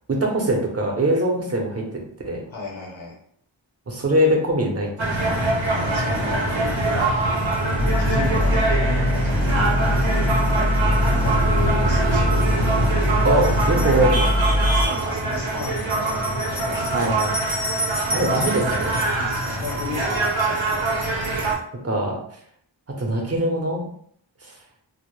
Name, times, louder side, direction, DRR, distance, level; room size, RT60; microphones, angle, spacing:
voice 1, 0.1-2.4 3.9-4.9 13.2-14.6 16.9-17.4 18.1-19.0 21.8-22.2 22.9-23.9, right 1 dB, 35° right, 0 dB, 0.6 m, -22 dB
voice 2, 2.5-3.1 5.7-7.3 8.0-10.1 10.9-12.5 13.5-13.6 14.7-17.2 17.9-18.6 19.1-20.8, left 4 dB, 90° left, -3 dB, 0.8 m, -35 dB
sound 1, 5.0-21.5, right 2 dB, 85° right, 0.7 m, -23 dB
sound 2, 7.7-14.9, left 1 dB, 20° left, 0.5 m, -22 dB
2.1 x 2.1 x 3.0 m, 0.63 s
wide cardioid pair, 50°, 46 cm